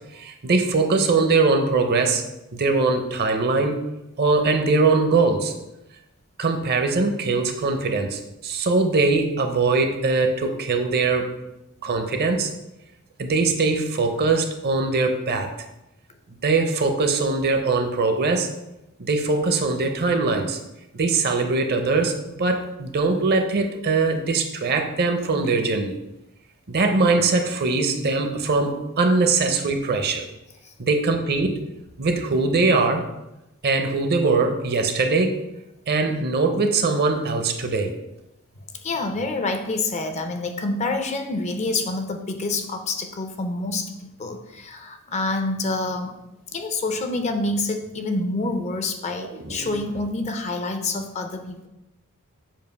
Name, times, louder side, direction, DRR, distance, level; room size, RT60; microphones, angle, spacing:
voice 1, 0.1-2.2 2.5-3.8 4.2-5.5 6.4-11.3 11.8-12.5 13.2-15.5 16.4-18.5 19.0-20.6 20.9-26.0 26.7-30.3 30.8-31.6 32.0-33.1 33.6-35.4 35.9-37.9 49.2-49.7, right 3 dB, 45° right, 5 dB, 0.6 m, -21 dB
voice 2, 38.8-46.2 46.5-51.7, left 2 dB, 30° left, 6 dB, 0.5 m, -27 dB
7.3 x 2.5 x 5.2 m, 0.91 s
head